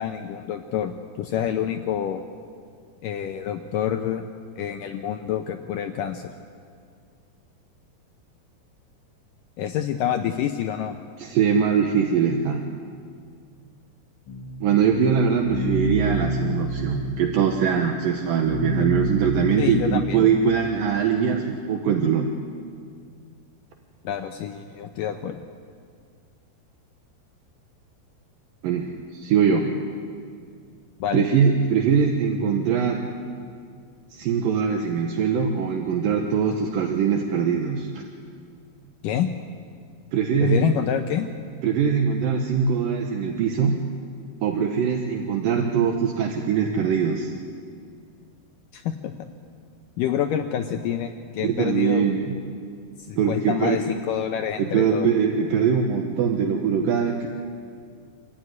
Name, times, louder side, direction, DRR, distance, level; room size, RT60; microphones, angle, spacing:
voice 1, 0.0-2.2 3.0-4.2 4.6-6.3 9.6-11.0 19.6-20.2 24.0-25.4 31.0-31.2 39.0-39.3 40.4-41.3 48.7-49.1 50.0-52.1 53.1-55.1, left 9 dB, 75° left, 6 dB, 2.2 m, -27 dB
voice 2, 11.2-12.7 14.6-22.3 28.6-29.8 31.1-33.1 34.1-37.9 40.1-40.7 41.6-43.9 44.4-47.3 51.4-52.4 53.2-53.8 54.6-57.3, right 6 dB, 70° right, 3 dB, 2.7 m, -22 dB
sound 1, 14.3-20.5, right 1 dB, 45° left, 1.6 m, -29 dB
26.5 x 14.5 x 9.6 m, 2.2 s
omnidirectional pair, 4.4 m